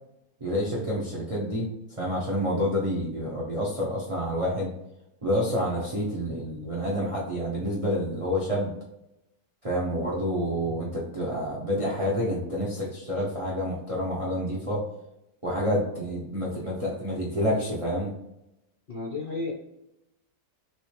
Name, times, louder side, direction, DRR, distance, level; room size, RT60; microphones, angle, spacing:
voice 1, 0.4-4.7 5.2-8.7 9.6-14.8 15.4-18.1, equal, 45° right, -4 dB, 0.4 m, -28 dB
voice 2, 18.9-19.5, left 3 dB, 55° left, -4 dB, 0.6 m, -32 dB
3.2 x 3.0 x 3.0 m, 0.88 s
omnidirectional pair, 1.8 m